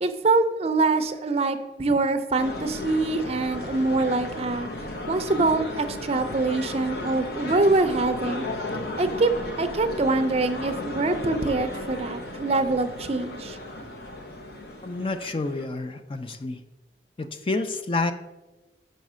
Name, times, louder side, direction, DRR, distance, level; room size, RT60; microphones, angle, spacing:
voice 1, 0.0-4.7 5.1-8.4 9.0-9.3 9.6-13.6, right 3 dB, 35° right, 9 dB, 0.5 m, -24 dB
sound 1, 2.4-15.6, left 2 dB, 65° left, 0.9 m, -35 dB
voice 2, 14.8-16.6 17.2-18.1, left 3 dB, 30° left, 9 dB, 0.4 m, -29 dB
5.6 x 5.2 x 6.1 m, 1.1 s
head